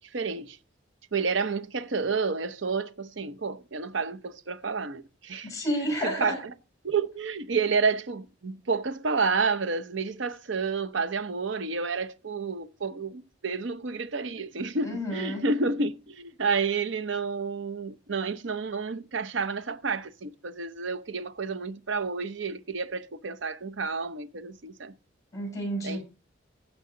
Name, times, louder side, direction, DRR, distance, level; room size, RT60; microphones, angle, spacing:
voice 1, 0.1-0.6 1.1-5.5 6.0-6.3 6.8-24.9 25.8-26.0, right 4 dB, 70° right, 0.8 m, -30 dB
voice 2, 5.4-6.4 14.8-15.5 25.3-26.0, equal, 15° left, 7.2 m, -30 dB
16.0 x 6.3 x 3.9 m
head